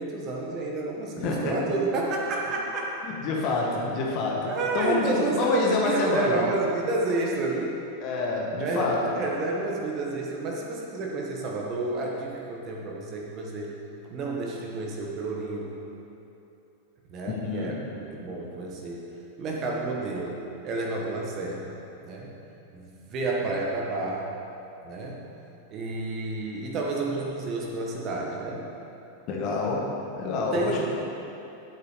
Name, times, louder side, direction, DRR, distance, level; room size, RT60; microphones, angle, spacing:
voice 1, 0.0-3.0 3.6-3.7 4.5-7.8 8.6-8.9 9.1-13.7 14.1-15.8 17.1-19.1 19.4-21.8 22.0-22.3 22.7-24.3 24.8-25.2 25.7-28.6 29.0-29.1 30.5-30.8, right 2 dB, 35° right, -2 dB, 1.6 m, -30 dB
voice 2, 1.2-1.5 3.0-6.5 8.0-9.1 17.3-17.8 29.3-30.8, left 3 dB, 40° left, -2 dB, 2.2 m, -27 dB
11.5 x 8.3 x 5.2 m, 2.8 s
figure-of-eight pair, 90°, 0 cm